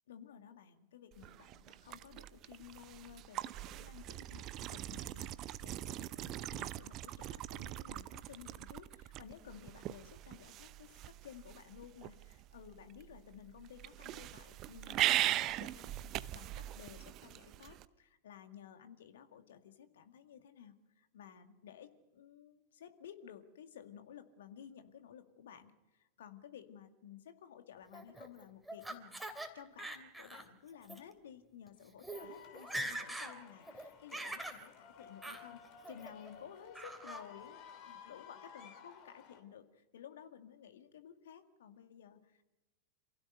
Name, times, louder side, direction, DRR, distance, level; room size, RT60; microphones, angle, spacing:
voice 1, 0.1-29.2 29.5-35.6 35.9-42.4, left 9 dB, 60° left, 7 dB, 2.1 m, -55 dB
sound 1, 1.1-17.8, right 14 dB, 35° right, 0.7 m, -40 dB
Laughter, 27.9-29.5 29.8-30.5 30.8-31.0 31.7-31.8 32.0-32.3 32.5-33.3 33.7-34.6 35.2-35.4 35.8-36.3 36.7-37.2, right 1 dB, 5° right, 3.0 m, -43 dB
sound 2, 32.1-39.4, left 7 dB, 40° left, 3.5 m, -55 dB
28.0 x 16.5 x 6.7 m, 1.1 s
figure-of-eight pair, 90°, 0 cm